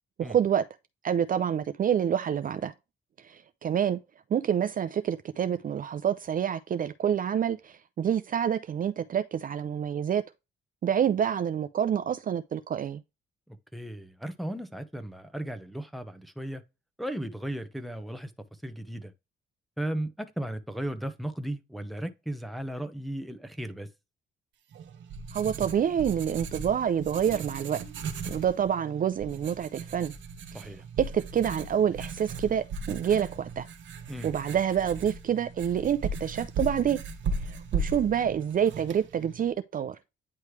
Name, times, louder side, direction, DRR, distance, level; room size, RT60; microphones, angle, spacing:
voice 1, 0.2-0.6 1.0-2.7 3.3-4.0 4.3-10.2 10.8-13.0 25.3-27.8 28.3-30.1 31.0-33.6 34.2-37.0 37.7-40.0, right 8 dB, 45° right, 0.5 m, -27 dB
voice 2, 13.7-16.6 17.0-18.3 18.6-19.1 19.8-23.9 30.5-30.8 34.1-34.3, right 1 dB, ahead, 0.9 m, -35 dB
Writing, 24.7-39.5, right 3 dB, 70° right, 1.1 m, -37 dB
9.6 x 3.2 x 3.2 m
cardioid pair, 90°, 20 cm